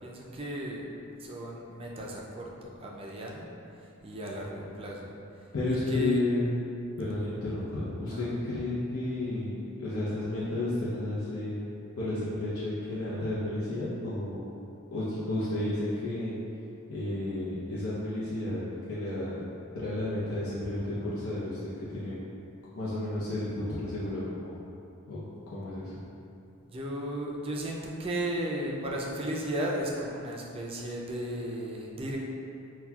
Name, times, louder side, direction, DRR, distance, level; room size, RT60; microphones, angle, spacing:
voice 1, 0.0-0.8 1.2-3.5 3.8-5.1 5.6-6.2 8.0-8.3 26.6-32.2, right 1 dB, 25° right, -2 dB, 0.4 m, -35 dB
voice 2, 5.5-6.4 7.0-11.7 12.0-14.6 14.9-16.4 16.9-18.6 18.9-19.3 19.7-22.2 22.7-24.6 25.1-25.2 25.5-26.0, left 2 dB, 80° left, -10 dB, 0.7 m, -32 dB
5.7 x 2.3 x 2.3 m, 2.8 s
head